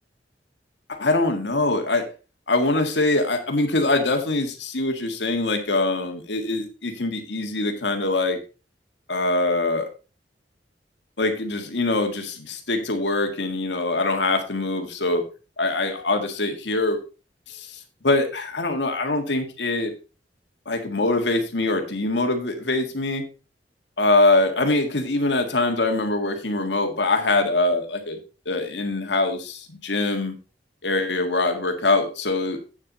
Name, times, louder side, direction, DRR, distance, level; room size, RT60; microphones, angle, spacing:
voice 1, 0.9-2.0 2.5-8.4 9.1-9.9 11.2-15.2 15.6-17.0 17.5-19.9 20.7-23.2 24.0-28.2 28.5-30.3 30.8-32.6, left 2 dB, 80° left, 5 dB, 1.8 m, -23 dB
8.7 x 7.7 x 4.1 m, 0.33 s
head